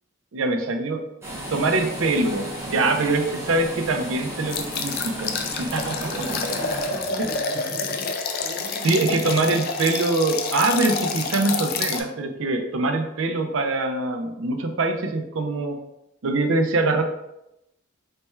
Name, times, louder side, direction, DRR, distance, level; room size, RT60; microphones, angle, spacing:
voice 1, 0.3-1.0 1.5-6.1 7.2-7.3 8.8-15.8 16.2-17.0, right 2 dB, 65° right, 5 dB, 0.5 m, -23 dB
sound 1, 1.2-7.4, right 1 dB, 15° right, 0.8 m, -34 dB
sound 2, 4.5-12.0, left 4 dB, 45° left, 0.4 m, -28 dB
voice 2, 6.0-9.4, right 2 dB, 40° right, -8 dB, 1.2 m, -37 dB
3.3 x 2.2 x 4.3 m, 0.86 s
head